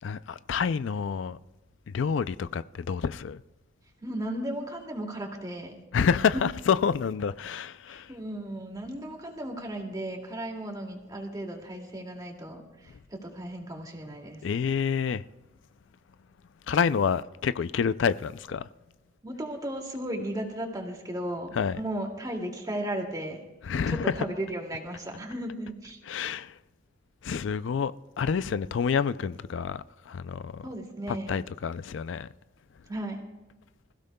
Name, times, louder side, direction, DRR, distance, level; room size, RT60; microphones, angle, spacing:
voice 1, 0.0-1.4 1.9-3.4 5.9-8.1 14.4-15.2 16.7-18.7 21.6-21.8 23.7-24.1 26.1-26.5 27.2-30.6 31.1-32.3, left 6 dB, 75° left, 0.4 m, -28 dB
voice 2, 4.0-5.7 6.3-6.4 7.5-7.6 7.9-14.4 19.2-23.4 23.9-26.0 30.6-31.4 32.9-33.2, right 1 dB, 20° right, 2.3 m, -35 dB
26.5 x 15.5 x 2.3 m
head